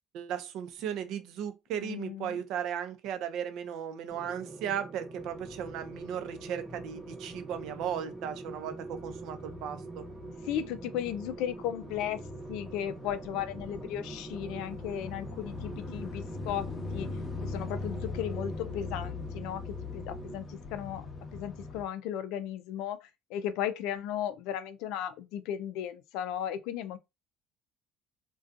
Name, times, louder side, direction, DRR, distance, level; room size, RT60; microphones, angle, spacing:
voice 1, 0.1-10.0, right 9 dB, 75° right, 0.5 m, -36 dB
voice 2, 1.8-2.4 10.5-12.2 12.5-17.1 17.4-21.1 21.3-27.0, left 10 dB, 80° left, 0.3 m, -35 dB
sound 1, 4.1-20.4, right 3 dB, 25° right, 0.9 m, -44 dB
sound 2, 5.2-21.8, left 4 dB, 30° left, 0.6 m, -42 dB
2.5 x 2.2 x 2.5 m
supercardioid pair, 95°, 0 cm